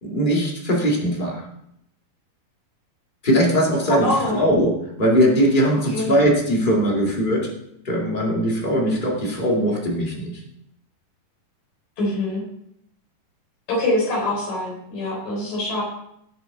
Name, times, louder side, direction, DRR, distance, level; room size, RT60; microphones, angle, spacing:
voice 1, 0.0-1.5 3.2-7.5 7.8-10.4, equal, 15° left, -2 dB, 1.9 m, -20 dB
voice 2, 3.9-4.4 5.9-6.1 12.0-12.4 13.7-15.8, left 1 dB, 70° left, -2 dB, 5.5 m, -24 dB
18.0 x 6.7 x 3.9 m, 0.76 s
omnidirectional pair, 3.9 m